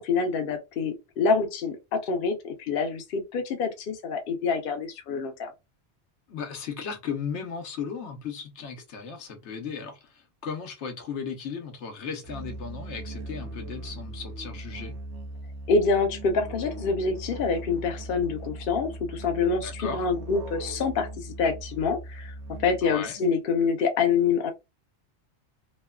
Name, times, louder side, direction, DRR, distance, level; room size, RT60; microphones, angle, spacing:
voice 1, 0.0-5.5 15.7-22.3 22.6-24.5, left 5 dB, 60° left, 0.8 m, -26 dB
voice 2, 6.3-14.9 19.6-20.0 22.8-23.2, left 6 dB, 80° left, 1.1 m, -36 dB
Musical instrument, 12.2-23.0, right 2 dB, 75° right, 0.8 m, -39 dB
3.1 x 2.1 x 2.2 m
omnidirectional pair, 1.1 m